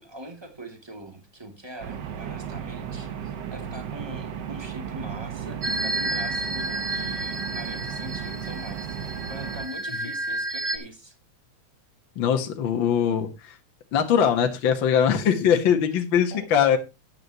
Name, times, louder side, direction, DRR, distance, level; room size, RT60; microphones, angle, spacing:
voice 1, 0.0-11.1 16.3-16.5, right 1 dB, 10° right, 5 dB, 2.0 m, -42 dB
sound 1, 1.8-9.7, right 8 dB, 60° right, 1.1 m, -34 dB
sound 2, 5.6-10.8, right 1 dB, 40° right, 0.8 m, -31 dB
voice 2, 12.1-13.6 13.9-16.8, left 8 dB, 50° left, 5 dB, 1.6 m, -21 dB
13.5 x 9.4 x 2.9 m, 0.26 s
omnidirectional pair, 3.4 m